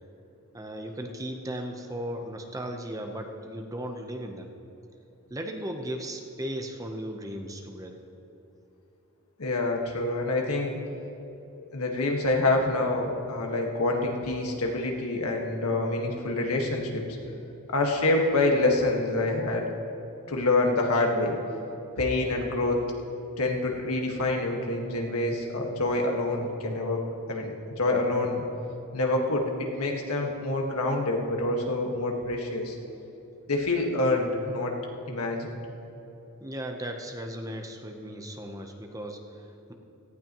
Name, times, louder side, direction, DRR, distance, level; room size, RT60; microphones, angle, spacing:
voice 1, 0.5-4.5 5.3-8.0 36.4-39.7, right 1 dB, 15° right, 4 dB, 0.8 m, -36 dB
voice 2, 9.4-10.8 11.6-17.0 17.7-19.7 20.3-21.4 22.0-22.8 23.4-27.0 27.3-28.4 28.9-32.8 33.5-34.8 35.1-35.6, left 2 dB, 90° left, 1 dB, 1.6 m, -26 dB
17.5 x 15.0 x 3.0 m, 2.9 s
head